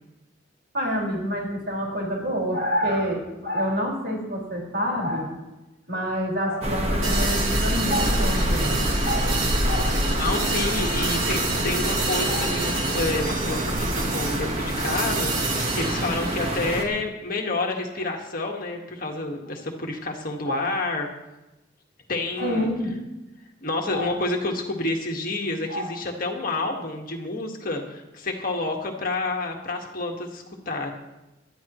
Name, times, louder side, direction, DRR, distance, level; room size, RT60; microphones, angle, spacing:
voice 1, 0.7-5.4 5.9-10.0 12.3-12.4 20.4-20.6 22.4-23.0 23.9-24.2 25.7-25.9, equal, 55° right, -3 dB, 5.0 m, -27 dB
sound 1, 6.6-16.8, equal, 30° right, 1.3 m, -26 dB
sound 2, 7.0-16.9, right 3 dB, 80° right, 2.1 m, -30 dB
voice 2, 10.1-21.1 22.1-22.7 23.6-30.9, left 2 dB, 45° left, 1 dB, 1.7 m, -29 dB
20.0 x 12.5 x 3.1 m, 0.99 s
head